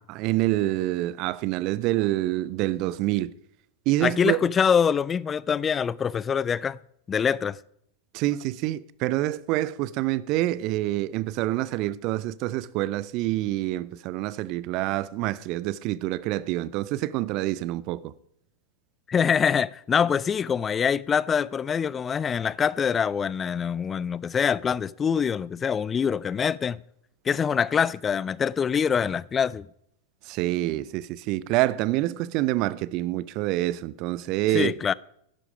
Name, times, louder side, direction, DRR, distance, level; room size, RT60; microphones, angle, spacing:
voice 1, 0.1-3.3 3.9-4.4 8.1-18.1 30.2-34.7, right 16 dB, 40° right, 0.5 m, -27 dB
voice 2, 4.0-6.8 7.1-7.6 19.1-26.8 27.3-29.7 34.5-34.9, left 7 dB, 20° left, 0.4 m, -24 dB
11.0 x 10.5 x 5.0 m
figure-of-eight pair, 90°, 0 cm